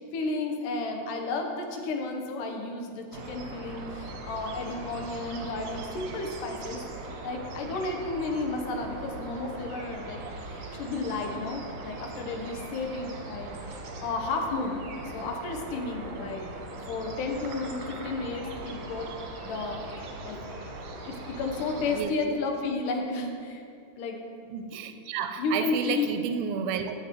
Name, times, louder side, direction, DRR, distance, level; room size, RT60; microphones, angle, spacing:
voice 1, 0.1-14.8 15.1-16.5 16.9-19.1 19.4-20.4 21.1-23.6 24.0-24.2 25.4-26.1, left 3 dB, 90° left, 3 dB, 2.5 m, -32 dB
sound 1, 3.1-22.0, right 2 dB, 60° right, 2.0 m, -40 dB
voice 2, 21.9-22.4 24.5-26.9, right 7 dB, 85° right, 8 dB, 2.0 m, -31 dB
16.0 x 6.5 x 3.0 m, 2.4 s
omnidirectional pair, 3.6 m